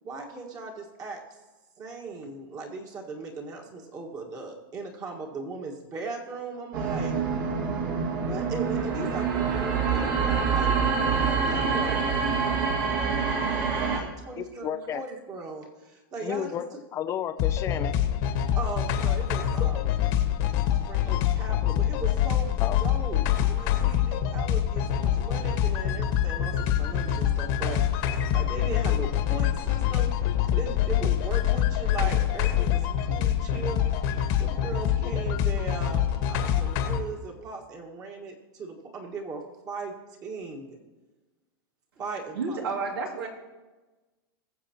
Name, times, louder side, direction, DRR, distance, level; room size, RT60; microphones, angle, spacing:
voice 1, 0.0-1.4 1.8-7.2 8.0-12.3 13.0-13.1 13.8-16.8 18.5-20.0 20.9-30.2 30.5-33.9 34.4-39.9 40.2-40.8 42.0-42.6 43.2-43.3, right 4 dB, 30° right, 0 dB, 1.7 m, -38 dB
sound 1, 6.7-14.0, right 5 dB, 60° right, 2.0 m, -26 dB
voice 2, 14.4-15.0 16.2-16.7 16.9-18.0 22.6-22.8, left 10 dB, 25° left, 10 dB, 0.5 m, -32 dB
sound 2, 17.4-37.0, left 10 dB, 50° left, 1.5 m, -25 dB
voice 3, 42.3-43.3, right 4 dB, 90° right, 0 dB, 2.6 m, -30 dB
20.5 x 7.1 x 3.0 m, 1.2 s
hypercardioid pair, 125°, 12 cm